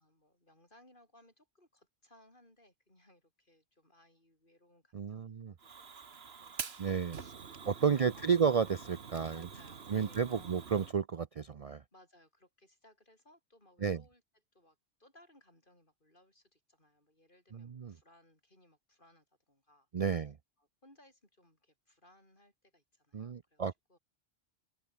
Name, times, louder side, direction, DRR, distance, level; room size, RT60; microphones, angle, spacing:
voice 1, 0.0-7.3 7.6-8.5 9.3-10.6 11.9-14.2 14.5-20.3 20.6-24.0, left 1 dB, 50° left, 8.3 m, -64 dB
voice 2, 4.9-5.5 6.8-7.2 7.7-9.5 9.9-11.8 13.8-14.0 17.5-17.9 19.9-20.4 23.1-24.0, right 6 dB, 40° right, 0.6 m, -32 dB
Fire, 5.6-10.9, right 5 dB, 65° right, 1.7 m, -46 dB
open air
omnidirectional pair, 1.1 m